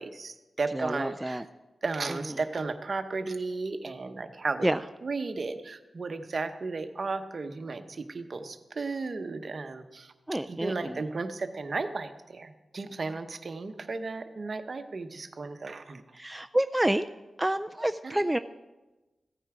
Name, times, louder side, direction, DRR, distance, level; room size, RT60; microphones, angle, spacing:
voice 1, 0.0-1.4 1.8-4.7 5.0-10.1 10.5-16.0 18.0-18.2, right 3 dB, 50° right, 8 dB, 0.9 m, -34 dB
voice 2, 0.7-1.4 2.1-2.2 4.6-4.8 10.3-11.0 16.1-17.1 17.4-18.4, right 1 dB, 10° right, 9 dB, 0.3 m, -28 dB
15.0 x 9.1 x 4.9 m, 1.1 s
wide cardioid pair, 95°, 0 cm